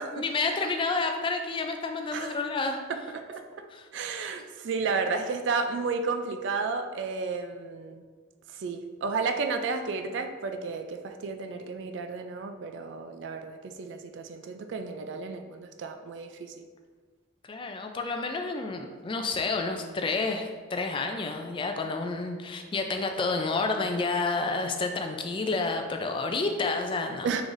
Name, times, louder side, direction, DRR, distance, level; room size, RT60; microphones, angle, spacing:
voice 1, 0.1-2.8 3.7-3.9 17.5-27.3, left 3 dB, 25° left, 4 dB, 0.3 m, -30 dB
voice 2, 2.9-3.6 3.9-8.0 8.5-16.5 27.2-27.4, right 4 dB, 65° right, 6 dB, 0.3 m, -32 dB
4.7 x 3.9 x 2.5 m, 1.5 s
head